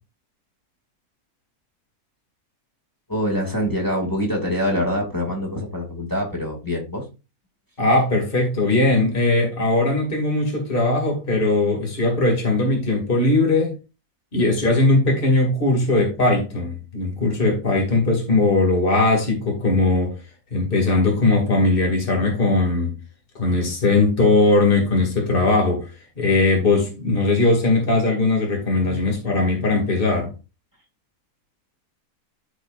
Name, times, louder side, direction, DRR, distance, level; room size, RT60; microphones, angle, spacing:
voice 1, 3.1-7.0, equal, 15° left, 2.3 m, -24 dB
voice 2, 7.8-13.7 14.3-20.1 20.5-22.9 23.3-25.9 26.2-30.3, left 2 dB, 35° left, 2.6 m, -19 dB
13.5 x 4.9 x 2.5 m
omnidirectional pair, 1.6 m